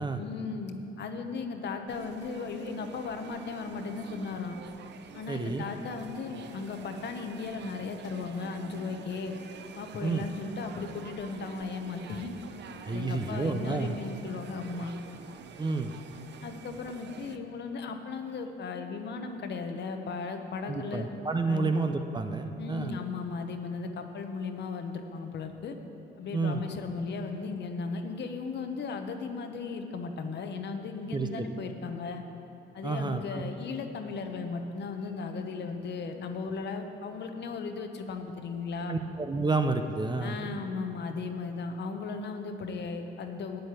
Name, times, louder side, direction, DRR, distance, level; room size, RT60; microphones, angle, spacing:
voice 1, 0.2-4.6 5.1-9.3 9.7-12.3 12.9-14.9 16.4-21.1 21.5-21.7 22.6-25.7 26.2-32.2 32.7-39.0 40.2-43.6, left 4 dB, 60° left, 6 dB, 1.0 m, -36 dB
sound 1, 1.9-17.4, right 7 dB, 60° right, 0.7 m, -48 dB
voice 2, 5.3-5.6 10.0-10.2 12.9-14.0 15.6-15.9 20.7-22.9 26.3-26.6 31.1-31.5 32.8-33.5 38.9-40.3, right 3 dB, 20° right, 7 dB, 0.7 m, -30 dB
8.8 x 7.8 x 8.3 m, 2.8 s
cardioid pair, 90°, 20 cm